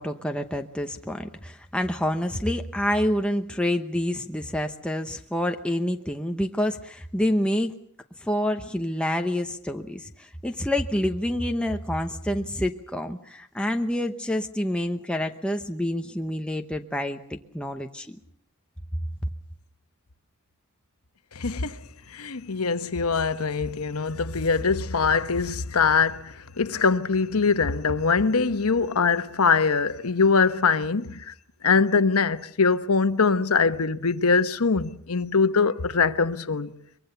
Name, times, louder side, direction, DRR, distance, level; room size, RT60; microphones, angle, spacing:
voice 1, 0.0-7.7 8.2-18.2, left 1 dB, 5° left, 0.9 m, -27 dB
voice 2, 21.3-21.8 22.1-31.3 31.6-36.7, left 5 dB, 80° left, 1.1 m, -23 dB
23.5 x 23.0 x 6.9 m
head